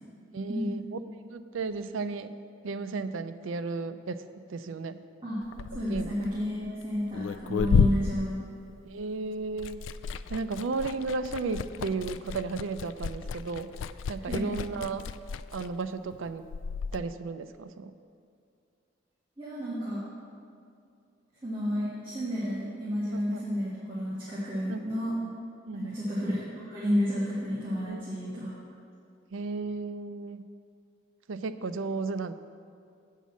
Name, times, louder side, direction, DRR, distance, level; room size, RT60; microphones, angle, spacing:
voice 1, 0.3-0.8 1.2-2.3 2.6-5.0 5.7-6.1 7.7-7.8 8.9-9.8 10.3-13.7 14.1-15.1 15.5-16.4 16.9-17.9 23.1-23.4 24.7-24.8 25.7-26.0 27.9-28.5 29.3-30.4 31.3-32.3, right 4 dB, 80° right, 11 dB, 0.4 m, -34 dB
Liquid, 5.4-9.1 9.4-17.0, left 6 dB, 75° left, 0.3 m, -32 dB
voice 2, 5.7-8.4 14.3-14.5 19.4-20.0 21.4-25.2 25.7-28.5, equal, 25° right, -10 dB, 2.0 m, -31 dB
8.2 x 5.6 x 7.4 m, 2.4 s
head